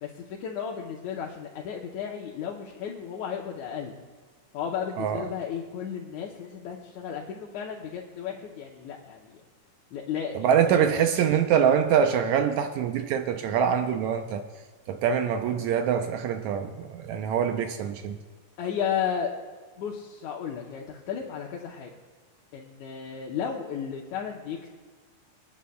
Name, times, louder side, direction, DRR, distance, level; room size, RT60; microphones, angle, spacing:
voice 1, 0.0-3.9 4.5-9.4 9.9-10.4 10.7-11.3 18.6-19.3 19.8-21.9 22.5-24.7, left 8 dB, 75° left, 2.2 m, -34 dB
voice 2, 10.3-14.4 14.9-18.2, right 8 dB, 80° right, 1.9 m, -24 dB
25.5 x 9.7 x 2.2 m
omnidirectional pair, 3.5 m